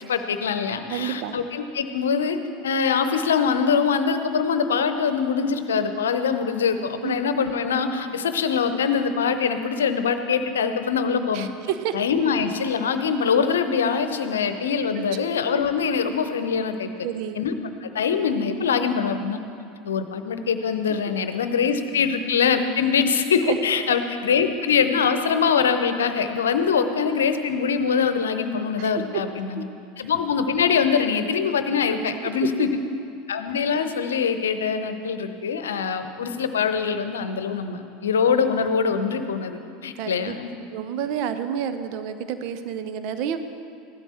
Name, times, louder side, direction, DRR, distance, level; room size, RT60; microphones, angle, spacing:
voice 1, 0.1-2.4 2.6-11.5 11.9-16.9 17.4-17.5 17.8-19.4 19.8-29.6 30.0-32.7 33.3-40.5, left 6 dB, 75° left, 9 dB, 0.8 m, -23 dB
voice 2, 0.9-1.4 7.0-7.2 11.3-12.0 17.0-17.4 23.5-23.6 28.8-29.2 29.5-29.6 30.0-30.1 39.9-40.4 40.7-43.4, right 9 dB, 55° right, 10 dB, 0.8 m, -29 dB
15.5 x 12.5 x 4.4 m, 2.5 s
figure-of-eight pair, 80°, 0 cm